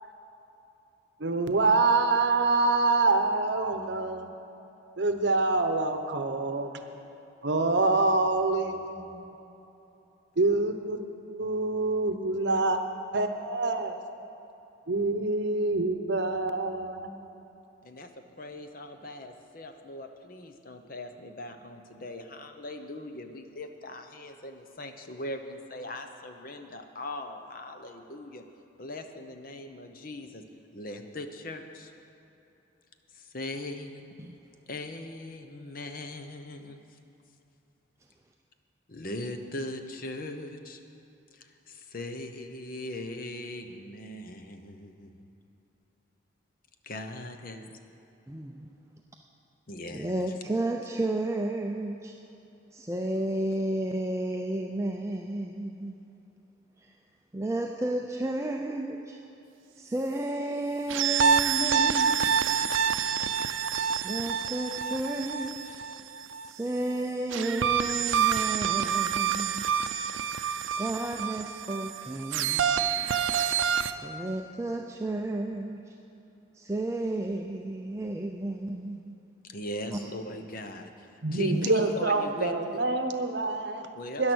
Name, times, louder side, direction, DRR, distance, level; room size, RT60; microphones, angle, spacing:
voice 1, 1.2-4.3 5.0-6.8 7.4-9.3 10.4-12.8 13.1-13.9 14.9-17.1 81.2-83.9 84.2-84.3, right 3 dB, 60° right, 7 dB, 0.9 m, -26 dB
voice 2, 18.4-28.4 28.8-30.4 30.7-31.9 33.1-34.0 34.7-36.8 38.9-40.8 41.3-45.3 46.8-47.7 49.7-50.3 79.4-82.5 83.9-84.3, left 1 dB, 45° left, 6 dB, 0.8 m, -40 dB
voice 3, 48.3-48.7 49.9-52.1 52.7-56.1 56.8-57.0 57.3-59.2 59.8-62.7 64.0-65.8 66.4-69.7 70.8-72.9 73.9-75.9 76.5-79.1 79.9-80.0 81.5-81.7, right 1 dB, 15° right, 2 dB, 0.4 m, -32 dB
sound 1, 60.9-66.5 67.3-73.9, right 7 dB, 85° right, 0.5 m, -27 dB
13.0 x 10.5 x 6.2 m, 3.0 s
head